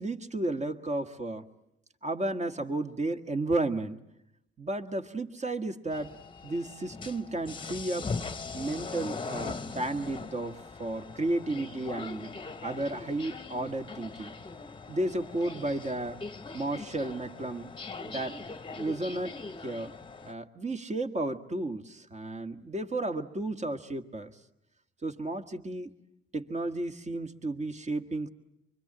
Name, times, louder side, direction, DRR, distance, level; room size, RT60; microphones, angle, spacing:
voice 1, 0.0-1.5 2.0-4.0 4.6-6.1 6.4-8.1 8.5-14.3 14.9-16.2 16.5-17.7 18.0-19.4 19.6-19.9 20.2-24.3 25.0-25.9 26.3-28.3, right 2 dB, 35° right, 6 dB, 1.7 m, -33 dB
sound 1, 5.9-20.3, left 4 dB, 25° left, 1.0 m, -41 dB
25.0 x 23.5 x 8.8 m, 0.84 s
cardioid pair, 90°, 20 cm